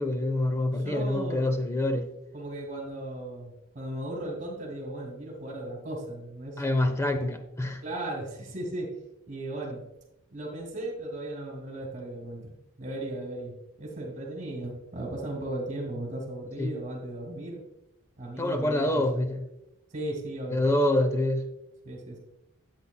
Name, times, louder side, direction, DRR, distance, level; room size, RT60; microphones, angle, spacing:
voice 1, 0.0-2.1 6.6-7.8 16.6-16.7 18.4-19.4 20.5-21.5, left 1 dB, 15° left, 0.8 m, -26 dB
voice 2, 0.8-1.4 2.3-6.9 7.8-8.9 9.3-9.8 10.3-17.6 18.2-19.0 19.9-20.6 21.8-22.2, right 1 dB, 35° right, 2.6 m, -36 dB
12.5 x 8.4 x 2.3 m
head